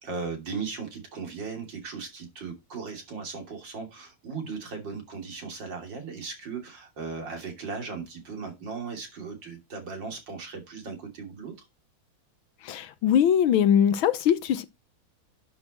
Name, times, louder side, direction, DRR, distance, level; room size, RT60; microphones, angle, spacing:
voice 1, 0.0-11.7, right 5 dB, 60° right, 3.6 m, -37 dB
voice 2, 12.6-14.6, left 9 dB, 80° left, 1.7 m, -22 dB
11.5 x 6.2 x 4.3 m
omnidirectional pair, 2.2 m